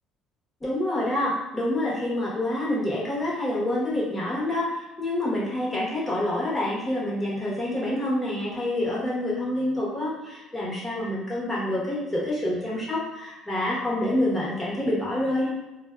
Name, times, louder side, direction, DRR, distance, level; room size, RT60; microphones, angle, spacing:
voice 1, 0.6-15.5, left 1 dB, 15° left, -6 dB, 1.1 m, -27 dB
2.4 x 2.3 x 2.4 m, 1.0 s
supercardioid pair, 90°, 0 cm